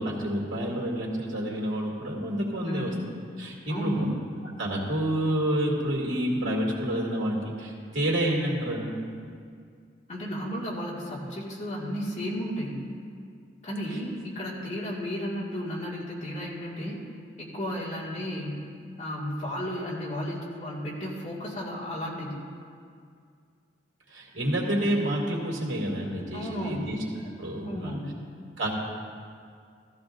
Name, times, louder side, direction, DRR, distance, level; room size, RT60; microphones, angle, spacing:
voice 1, 0.0-2.9 3.4-4.1 4.6-9.0 24.1-27.0 27.4-28.0 28.6-28.8, right 1 dB, 90° right, -2 dB, 2.4 m, -28 dB
voice 2, 2.7-3.0 3.7-4.2 10.1-12.8 13.6-17.0 17.4-18.7 19.0-22.4 26.3-26.9 27.6-28.2, equal, 35° left, -5 dB, 2.1 m, -33 dB
15.0 x 14.5 x 2.6 m, 2.2 s
head